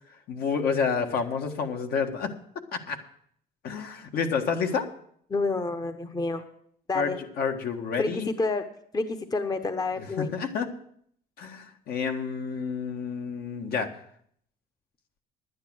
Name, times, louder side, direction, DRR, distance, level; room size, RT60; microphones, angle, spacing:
voice 1, 0.3-2.3 2.7-3.0 3.6-4.9 6.9-8.3 10.0-10.7 11.4-13.9, left 6 dB, 65° left, 4 dB, 1.6 m, -29 dB
voice 2, 5.3-6.4 6.9-7.2 8.0-8.1 8.4-8.6 8.9-10.3, left 3 dB, 20° left, 8 dB, 0.9 m, -28 dB
11.0 x 9.7 x 6.2 m, 0.65 s
cardioid pair, 110°, 17 cm